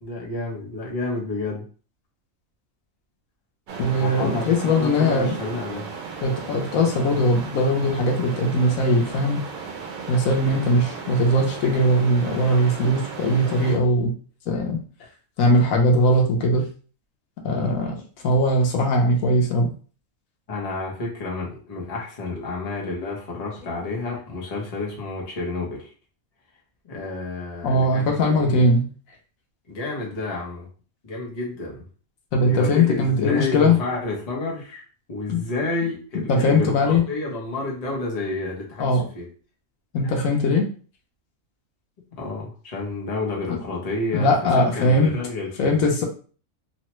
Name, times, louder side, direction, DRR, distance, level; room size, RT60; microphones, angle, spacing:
voice 1, 0.0-1.7 4.0-5.9 10.4-10.7 20.5-25.9 26.8-28.7 29.7-30.7 31.0-31.8 32.4-34.8 35.1-39.3 42.2-45.7, left 3 dB, 35° left, -3 dB, 0.8 m, -30 dB
sound 1, 3.7-13.8, right 5 dB, 90° right, 1.1 m, -35 dB
voice 2, 3.8-5.3 6.2-9.4 10.1-14.1 14.5-14.8 15.4-16.6 17.4-19.7 23.6-23.8 27.6-28.8 32.3-33.8 35.3-35.4 36.3-37.0 38.8-39.0 39.9-40.6 43.5-43.6 44.1-45.1 45.6-46.0, left 1 dB, 80° left, 1 dB, 1.2 m, -20 dB
3.1 x 2.2 x 3.0 m, 0.39 s
omnidirectional pair, 1.4 m